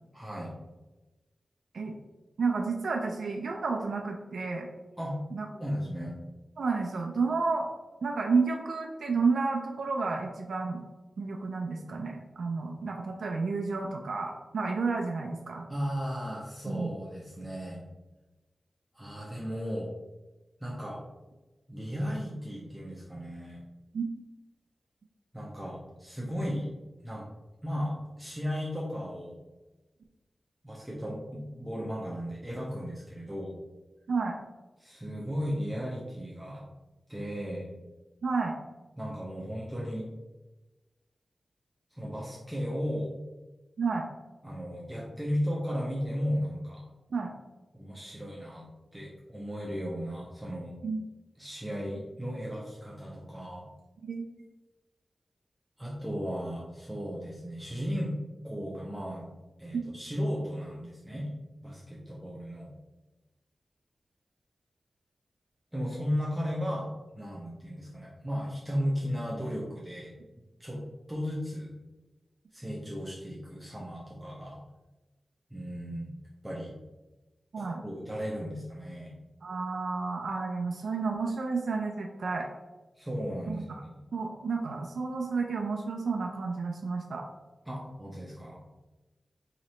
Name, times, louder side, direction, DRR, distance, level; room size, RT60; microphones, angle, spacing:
voice 1, 0.1-0.5 5.0-5.2 5.6-6.2 15.7-17.8 18.9-19.9 20.6-21.0 21.7-23.6 25.3-26.7 27.0-27.2 27.6-29.4 30.6-33.5 34.8-36.6 37.1-37.7 39.0-40.1 41.9-43.1 44.4-46.8 47.7-50.7 51.4-53.7 55.8-58.1 58.4-59.3 59.6-61.3 61.6-62.7 65.7-66.9 67.1-70.1 70.6-70.8 71.1-71.7 72.5-74.6 75.5-76.1 76.4-76.7 77.6-79.1 83.0-84.0 87.7-88.6, equal, 10° right, -5 dB, 0.7 m, -35 dB
voice 2, 2.4-4.7 5.3-5.5 6.6-7.7 8.0-10.8 11.2-15.6 16.7-16.9 23.9-24.1 34.1-34.4 38.2-38.6 43.8-44.1 47.1-47.3 50.8-51.0 54.0-54.2 59.7-59.8 77.5-77.8 79.4-82.5 83.5-83.6 84.1-87.2, right 4 dB, 85° right, 2 dB, 0.4 m, -31 dB
3.0 x 2.8 x 4.1 m, 1.1 s
wide cardioid pair, 70°, 0 cm